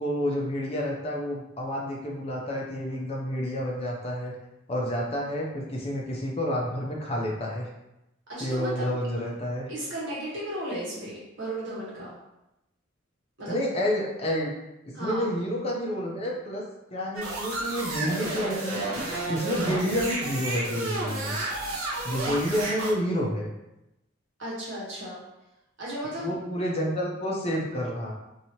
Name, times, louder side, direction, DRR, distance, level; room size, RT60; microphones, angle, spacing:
voice 1, 0.0-4.3 4.7-7.7 8.4-9.7 13.5-14.5 15.0-16.6 16.9-21.3 22.0-23.5 26.2-28.1, equal, 30° left, -2 dB, 0.6 m, -29 dB
voice 2, 8.3-9.0 9.7-12.1 13.4-13.6 14.9-15.2 22.2-22.3 24.4-25.2 25.8-26.3, right 1 dB, 65° right, -7 dB, 1.3 m, -34 dB
sound 1, 17.2-22.9, right 2 dB, 85° right, 0.7 m, -31 dB
2.9 x 2.7 x 2.9 m, 0.90 s
head